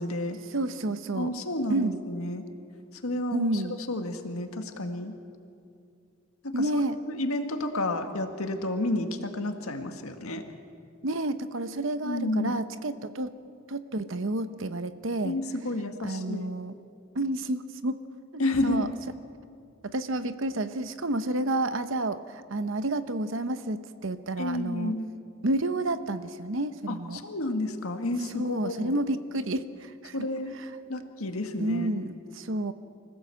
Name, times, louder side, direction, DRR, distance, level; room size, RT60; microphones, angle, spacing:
voice 1, 0.0-0.4 1.1-2.4 3.0-3.6 3.9-5.2 6.4-10.4 12.0-12.6 15.2-16.5 18.4-18.9 24.4-25.0 26.9-29.0 30.1-30.5 30.9-31.9, left 2 dB, 90° left, 5 dB, 1.8 m, -31 dB
voice 2, 0.5-1.3 1.7-2.0 3.3-3.8 6.5-7.0 11.0-13.4 13.7-15.4 16.0-16.7 17.1-18.0 18.6-18.9 19.8-24.9 25.4-27.2 28.3-30.3 30.6-30.7 31.6-32.7, right 1 dB, 65° right, 11 dB, 0.9 m, -30 dB
25.0 x 16.0 x 7.7 m, 2.4 s
head